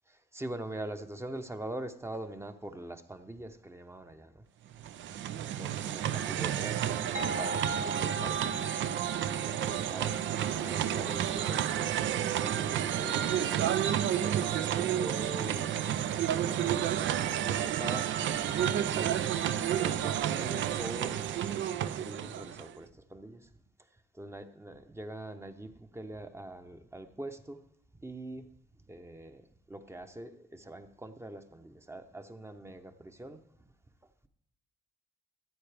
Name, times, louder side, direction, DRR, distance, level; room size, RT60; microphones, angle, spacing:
voice 1, 0.3-4.3 5.3-8.6 9.4-11.7 12.3-13.8 14.2-18.0 18.8-19.3 19.8-21.2 21.5-23.4 24.2-27.6 28.0-28.5 28.9-29.4 29.7-33.4, right 1 dB, 15° right, 7 dB, 0.8 m, -43 dB
sound 1, 4.7-22.8, right 10 dB, 70° right, 0.5 m, -31 dB
sound 2, 7.1-12.6, right 1 dB, 40° right, 1.2 m, -41 dB
13.5 x 9.0 x 3.4 m, 0.72 s
cardioid pair, 90°, 20 cm